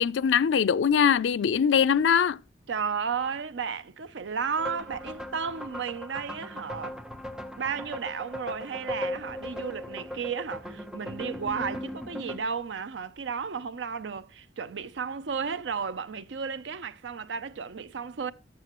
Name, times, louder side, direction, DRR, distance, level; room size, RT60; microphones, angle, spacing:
voice 1, 0.0-2.4, left 7 dB, 85° left, 0.4 m, -22 dB
voice 2, 2.7-7.0 7.6-18.3, right 6 dB, 80° right, 0.6 m, -33 dB
sound 1, 4.6-12.4, left 1 dB, 5° right, 0.8 m, -38 dB
12.5 x 7.3 x 3.0 m
head